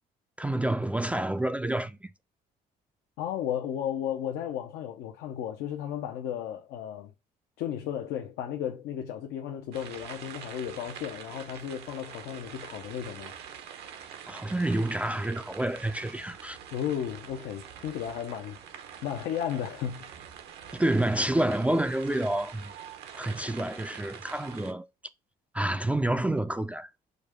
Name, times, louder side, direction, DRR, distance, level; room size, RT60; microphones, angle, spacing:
voice 1, 0.4-2.1 14.3-16.6 20.7-22.7 23.1-24.9 25.5-26.9, right 1 dB, 10° right, 0.3 m, -28 dB
voice 2, 3.2-7.1 7.6-13.3 16.7-20.1 20.6-20.7, left 9 dB, 85° left, 0.7 m, -34 dB
sound 1, 9.7-24.7, right 8 dB, 80° right, 0.9 m, -45 dB
5.1 x 2.2 x 4.7 m
cardioid pair, 110°, 17 cm